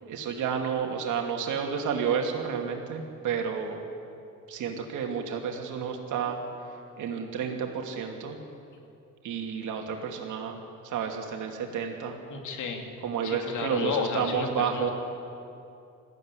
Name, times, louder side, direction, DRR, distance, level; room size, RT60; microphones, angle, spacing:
voice 1, 0.0-3.8 4.5-6.4 7.0-8.4 9.2-12.2 13.0-14.9, right 7 dB, 80° right, 3 dB, 2.8 m, -31 dB
voice 2, 12.3-12.9 13.2-14.9, left 5 dB, 80° left, 3 dB, 2.9 m, -32 dB
20.0 x 15.0 x 10.0 m, 2.7 s
cardioid pair, 90°, 30 cm